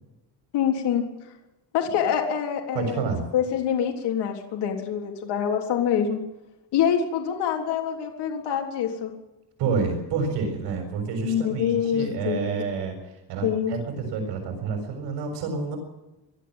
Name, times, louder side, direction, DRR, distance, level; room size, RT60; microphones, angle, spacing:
voice 1, 0.5-1.0 1.7-3.0 3.3-6.2 6.7-9.1 11.2-12.4 13.4-13.7, left 8 dB, 75° left, 2 dB, 3.7 m, -25 dB
voice 2, 2.7-3.2 9.6-15.8, right 5 dB, 90° right, 4 dB, 6.8 m, -29 dB
21.5 x 13.0 x 9.8 m, 0.99 s
cardioid pair, 140°, 41 cm